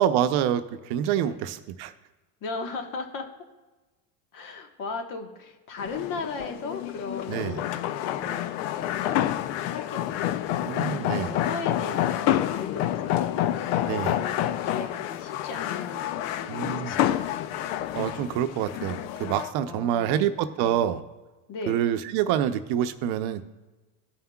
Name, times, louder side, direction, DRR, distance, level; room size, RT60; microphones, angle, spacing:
voice 1, 0.0-1.9 7.3-7.6 10.6-11.4 13.9-14.2 16.5-16.9 17.9-21.0 21.7-23.4, right 10 dB, 65° right, 10 dB, 0.7 m, -26 dB
voice 2, 1.2-1.5 2.4-3.3 4.3-8.4 8.7-9.3 9.6-13.6 14.2-17.6 19.6-20.3 20.6-20.8 21.5-21.8, left 4 dB, 50° left, 4 dB, 1.3 m, -37 dB
sound 1, 5.8-19.5, left 12 dB, 70° left, 0.6 m, -28 dB
16.5 x 5.6 x 2.3 m, 1.2 s
supercardioid pair, 105°, 42 cm